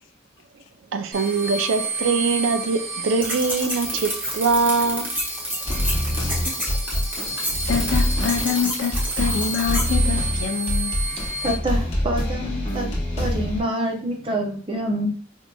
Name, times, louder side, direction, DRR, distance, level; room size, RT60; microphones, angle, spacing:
voice 1, 0.9-5.1, right 4 dB, 85° right, 0.4 m, -22 dB
sound 1, 1.1-11.5, right 2 dB, 50° right, 1.1 m, -32 dB
sound 2, 3.2-9.9, equal, 10° right, 1.0 m, -29 dB
sound 3, 5.6-13.6, left 1 dB, 30° left, 1.0 m, -25 dB
voice 2, 6.1-6.7 7.1-11.0, left 6 dB, 75° left, 0.4 m, -27 dB
voice 3, 11.0-12.9 13.2-15.1, right 1 dB, 30° right, 0.5 m, -27 dB
4.4 x 2.6 x 2.2 m
head